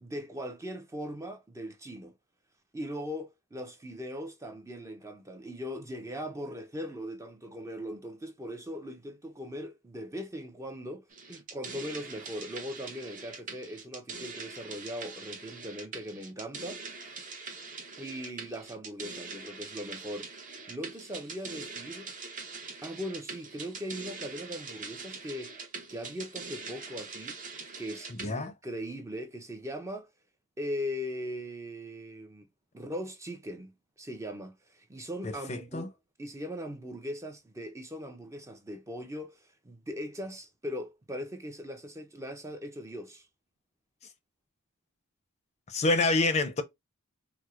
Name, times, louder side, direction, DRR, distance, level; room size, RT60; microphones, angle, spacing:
voice 1, 0.0-2.1 2.7-17.2 18.0-20.4 20.7-22.1 22.8-25.5 25.9-27.4 27.8-30.1 30.6-32.5 32.7-35.9 36.2-43.3, equal, 15° right, 0.5 m, -40 dB
sound 1, 11.1-28.3, right 4 dB, 35° right, 0.8 m, -43 dB
voice 2, 28.2-28.5 35.2-35.9 45.7-46.6, left 2 dB, 30° left, 0.5 m, -27 dB
4.5 x 2.0 x 2.3 m
head